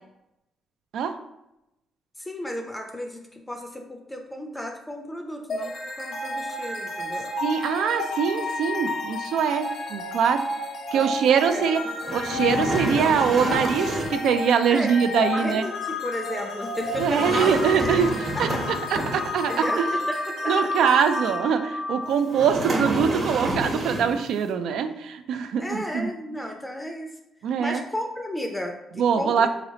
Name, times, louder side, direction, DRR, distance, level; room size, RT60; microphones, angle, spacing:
voice 1, 2.2-7.3 10.9-12.3 14.7-15.0 15.3-17.5 17.8-18.0 18.3-18.6 19.5-19.8 20.1-20.5 20.8-20.9 25.6-27.1 27.6-29.5, left 1 dB, 10° left, 3 dB, 0.5 m, -33 dB
sound 1, 5.5-22.6, left 2 dB, 65° left, 0.8 m, -31 dB
voice 2, 7.4-10.4 10.9-11.8 12.1-15.7 17.0-18.1 18.4-18.5 18.9-19.9 20.5-26.1 27.4-27.8 29.0-29.5, right 7 dB, 75° right, 8 dB, 0.3 m, -23 dB
sound 2, 12.0-14.3 16.8-19.5 22.3-24.2, right 1 dB, 50° right, 0.9 m, -29 dB
4.0 x 2.9 x 2.7 m, 0.89 s
cardioid pair, 90°, 0 cm